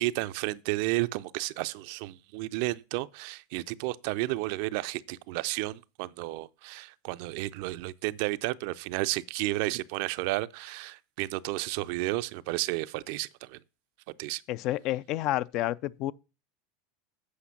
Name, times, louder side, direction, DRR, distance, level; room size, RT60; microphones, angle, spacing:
voice 1, 0.0-13.6 14.2-14.4, right 19 dB, 65° right, 0.4 m, -32 dB
voice 2, 14.5-16.1, left 15 dB, 55° left, 0.4 m, -30 dB
8.5 x 5.0 x 5.8 m
hypercardioid pair, 100°, 0 cm